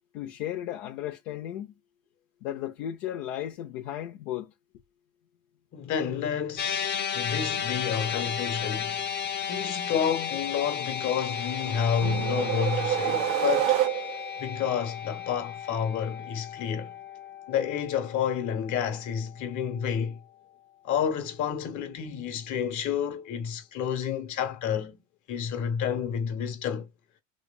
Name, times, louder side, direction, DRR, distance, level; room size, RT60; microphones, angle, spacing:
voice 1, 0.1-1.7 2.4-4.5, left 12 dB, 75° left, 0.7 m, -35 dB
voice 2, 5.7-9.2 9.5-13.8 14.4-16.9 17.5-20.2 20.8-25.0 25.3-26.9, left 8 dB, 45° left, 1.2 m, -30 dB
sound 1, 6.6-19.0, left 8 dB, 25° left, 0.7 m, -34 dB
sound 2, 11.3-14.4, right 13 dB, 90° right, 0.7 m, -28 dB
sound 3, 12.0-14.2, right 8 dB, 50° right, 0.6 m, -42 dB
3.3 x 3.2 x 2.3 m
hypercardioid pair, 85°, 40 cm